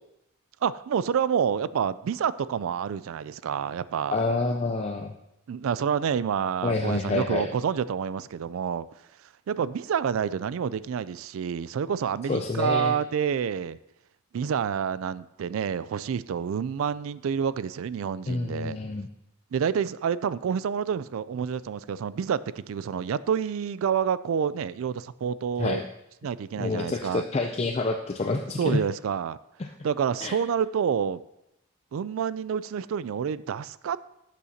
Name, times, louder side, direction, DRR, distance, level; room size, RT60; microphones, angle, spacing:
voice 1, 0.6-4.2 5.5-8.9 9.5-13.8 14.3-18.8 19.5-25.8 26.2-27.2 28.6-29.4 29.8-31.2 31.9-34.0, right 7 dB, 70° right, 17 dB, 0.3 m, -28 dB
voice 2, 4.1-5.1 6.6-7.5 12.3-12.9 18.3-19.1 25.6-25.9 26.6-28.8 30.2-30.3, left 3 dB, 30° left, 4 dB, 0.4 m, -28 dB
12.0 x 8.4 x 2.8 m, 0.84 s
head